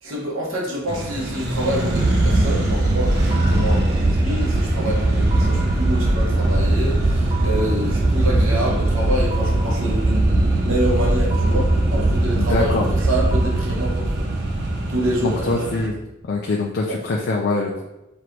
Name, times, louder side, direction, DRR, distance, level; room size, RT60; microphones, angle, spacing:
voice 1, 0.0-14.3 14.9-15.7 16.9-17.0, equal, 80° right, -4 dB, 1.0 m, -27 dB
Accelerating revving vroom, 0.9-15.9, right 1 dB, 55° right, 0.7 m, -29 dB
sound 1, 1.4-15.6, right 2 dB, 20° right, 0.3 m, -20 dB
voice 2, 12.4-12.8 15.2-15.9 16.2-17.8, left 3 dB, 55° left, -1 dB, 0.4 m, -23 dB
3.2 x 2.6 x 4.4 m, 0.93 s
head